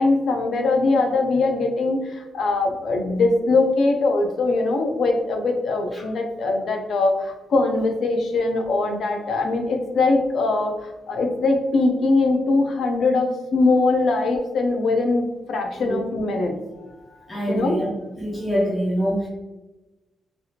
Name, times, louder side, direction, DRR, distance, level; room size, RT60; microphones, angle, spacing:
voice 1, 0.0-17.8, left 3 dB, 65° left, 3 dB, 0.5 m, -22 dB
voice 2, 17.3-17.9 18.2-19.3, equal, 10° left, -5 dB, 0.5 m, -25 dB
3.3 x 2.8 x 2.4 m, 1.1 s
cardioid pair, 135°, 0 cm